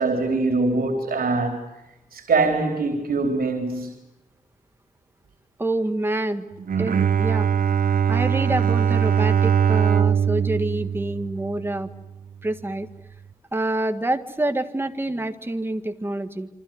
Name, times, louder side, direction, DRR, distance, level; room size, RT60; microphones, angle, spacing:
voice 1, 0.0-1.7 2.1-3.9, right 3 dB, 85° right, 3.9 m, -23 dB
voice 2, 5.6-6.5 6.8-7.5 8.1-11.9 12.4-12.9 13.5-16.5, right 1 dB, 15° right, 1.7 m, -27 dB
Bowed string instrument, 6.6-11.9, right 8 dB, 70° right, 0.9 m, -21 dB
27.5 x 25.5 x 7.9 m
wide cardioid pair, 160°, 15 cm